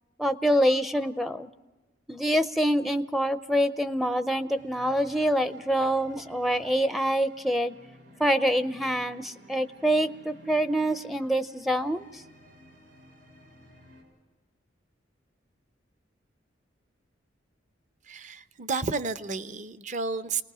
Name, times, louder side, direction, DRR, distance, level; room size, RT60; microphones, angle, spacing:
voice 1, 0.2-1.5 2.1-7.7 8.2-12.2, equal, ahead, 9 dB, 0.6 m, -26 dB
sound 1, 4.6-14.0, equal, 70° right, 7.4 m, -54 dB
voice 2, 18.1-20.4, right 4 dB, 40° right, 12 dB, 0.7 m, -31 dB
29.5 x 19.5 x 4.9 m, 1.2 s
head